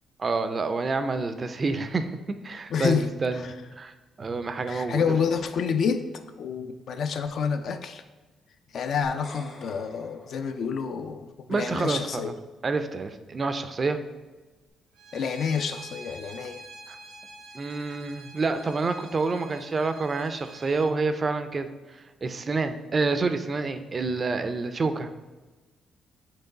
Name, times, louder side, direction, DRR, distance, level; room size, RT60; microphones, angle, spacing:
voice 1, 0.2-2.1 2.4-3.9 4.2-5.0 11.5-12.3 12.6-14.0 16.9-17.0 17.5-25.1, right 3 dB, 35° right, 9 dB, 0.3 m, -28 dB
voice 2, 2.7-3.5 4.7-6.1 6.4-8.0 8.7-12.3 15.1-16.6, left 6 dB, 60° left, 8 dB, 0.3 m, -28 dB
sound 1, 9.0-11.3, left 2 dB, 45° left, 0.8 m, -48 dB
Bowed string instrument, 14.9-20.9, right 2 dB, 85° right, 0.7 m, -47 dB
4.4 x 3.0 x 3.9 m, 1.2 s
cardioid pair, 90°, 0 cm